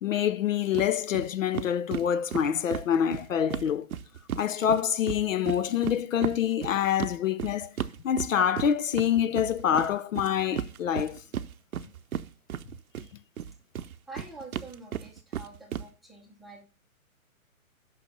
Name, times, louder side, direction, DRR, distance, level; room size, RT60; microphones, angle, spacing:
voice 1, 0.0-3.9 4.4-7.7 8.0-11.2, left 9 dB, 65° left, 0.6 m, -26 dB
sound 1, 0.7-0.9 1.1-1.3 1.5-4.4 4.7-13.1 13.4-15.8, right 9 dB, 80° right, 0.7 m, -34 dB
voice 2, 13.7-16.6, right 2 dB, ahead, 0.7 m, -47 dB
6.3 x 5.6 x 5.3 m
hypercardioid pair, 145°, 42 cm